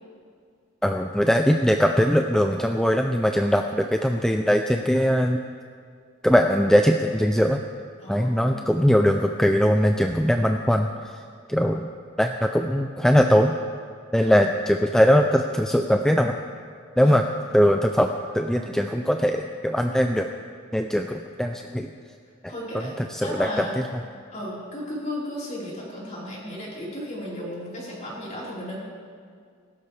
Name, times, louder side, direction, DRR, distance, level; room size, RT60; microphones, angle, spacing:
voice 1, 0.8-5.4 6.2-7.6 8.1-10.9 11.5-11.9 12.2-13.6 14.1-16.4 17.0-17.2 17.5-20.3 20.7-21.9 23.0-23.7, equal, 5° left, 4 dB, 0.4 m, -21 dB
voice 2, 8.0-8.9 14.2-14.5 17.0-17.2 22.5-23.7 24.3-28.8, equal, 35° left, -7 dB, 4.5 m, -35 dB
21.0 x 12.5 x 3.4 m, 2.1 s
head